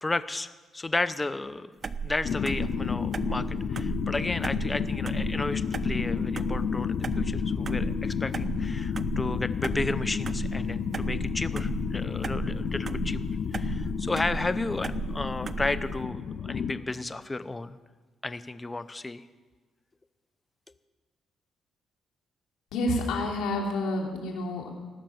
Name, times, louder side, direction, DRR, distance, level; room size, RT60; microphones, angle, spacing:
voice 1, 0.0-13.2 13.5-17.8 18.2-19.2, left 2 dB, 20° left, 14 dB, 0.7 m, -33 dB
sound 1, 1.8-16.0, right 6 dB, 40° right, 0.5 m, -36 dB
sound 2, 2.2-16.7, left 7 dB, 60° left, 0.9 m, -31 dB
voice 2, 22.7-24.7, left 2 dB, 85° left, -1 dB, 3.1 m, -29 dB
19.0 x 6.7 x 9.1 m, 1.3 s
cardioid pair, 90°, 0 cm